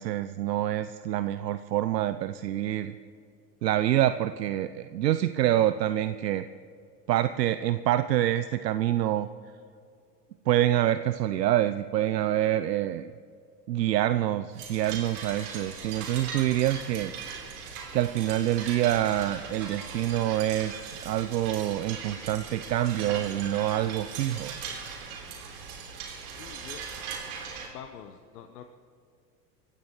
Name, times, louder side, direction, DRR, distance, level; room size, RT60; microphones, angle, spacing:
voice 1, 0.0-2.9 3.6-6.4 7.1-9.3 10.5-13.1 13.7-17.1 17.9-20.7 21.0-24.6, right 13 dB, 75° right, 12 dB, 0.6 m, -26 dB
sound 1, 14.5-27.7, right 6 dB, 60° right, 3.8 m, -39 dB
voice 2, 26.4-26.9 27.7-28.7, left 9 dB, 65° left, 6 dB, 1.1 m, -45 dB
25.5 x 16.0 x 3.1 m, 2.4 s
hypercardioid pair, 95°, 49 cm